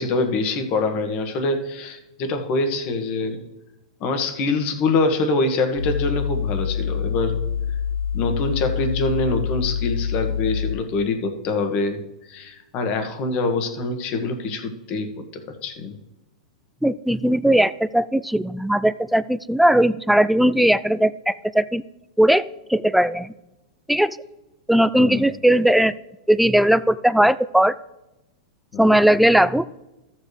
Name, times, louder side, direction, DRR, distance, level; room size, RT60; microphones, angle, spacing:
voice 1, 0.0-3.4 4.0-7.4 8.1-12.0 12.3-15.1 15.3-16.0 25.0-25.3 28.7-28.9, left 3 dB, 45° left, 6 dB, 1.5 m, -24 dB
sound 1, 5.8-10.7, left 7 dB, 65° left, 2.9 m, -26 dB
voice 2, 16.8-21.8 22.2-23.3 23.9-24.2 24.7-25.9 26.3-27.7 28.8-29.7, right 1 dB, ahead, 16 dB, 0.3 m, -18 dB
13.5 x 7.3 x 3.3 m, 0.99 s
hypercardioid pair, 115°, 3 cm